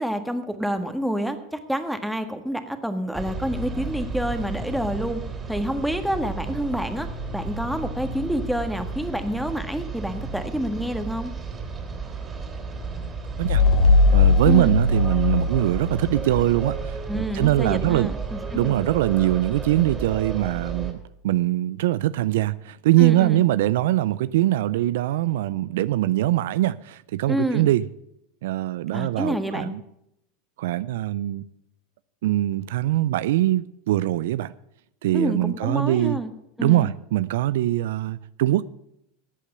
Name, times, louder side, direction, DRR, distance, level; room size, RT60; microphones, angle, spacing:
voice 1, 0.0-5.2 5.5-7.1 7.3-11.3 14.4-14.7 17.1-18.7 23.0-23.4 27.3-27.7 28.9-29.7 35.1-36.3 36.6-36.9, equal, ahead, 1.5 m, -28 dB
sound 1, 3.1-20.9, right 4 dB, 20° right, 3.0 m, -33 dB
sound 2, 13.4-16.8, left 3 dB, 50° left, 1.5 m, -19 dB
voice 2, 14.1-18.1 18.5-21.0 21.2-27.8 28.4-29.8 30.6-31.5 32.2-34.5 35.0-36.2 36.6-38.6, right 14 dB, 75° right, 0.4 m, -22 dB
14.0 x 8.3 x 6.7 m
hypercardioid pair, 105°, 0 cm